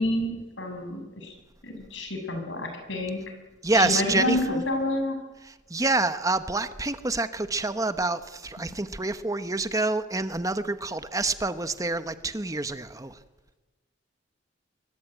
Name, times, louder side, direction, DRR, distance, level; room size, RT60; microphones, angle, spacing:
voice 1, 0.0-1.3 1.6-3.2 3.7-5.2, left 1 dB, 80° left, 5 dB, 7.3 m, -29 dB
voice 2, 3.6-4.6 5.4-13.2, right 2 dB, 20° right, 11 dB, 1.1 m, -27 dB
25.0 x 23.0 x 9.3 m, 1.1 s
head